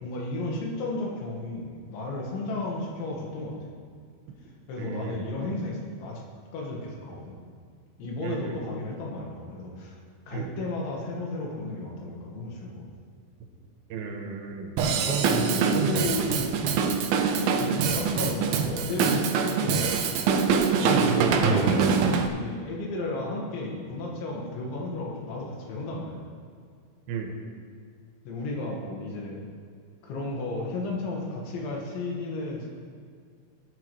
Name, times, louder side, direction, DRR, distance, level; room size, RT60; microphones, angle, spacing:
voice 1, 0.0-3.7 4.7-6.2 6.5-7.4 8.0-10.0 10.3-12.9 15.0-16.6 17.3-20.0 20.8-26.2 28.3-29.5 30.0-32.7, left 2 dB, 85° left, -2 dB, 4.2 m, -33 dB
voice 2, 4.8-5.3 8.2-8.6 10.3-10.6 13.9-16.1 20.7-21.5 27.1-27.4, right 5 dB, 70° right, 3 dB, 2.8 m, -32 dB
Drum kit / Drum, 14.8-22.3, right 6 dB, 90° right, 2.0 m, -24 dB
19.5 x 10.0 x 3.3 m, 2.1 s
omnidirectional pair, 5.1 m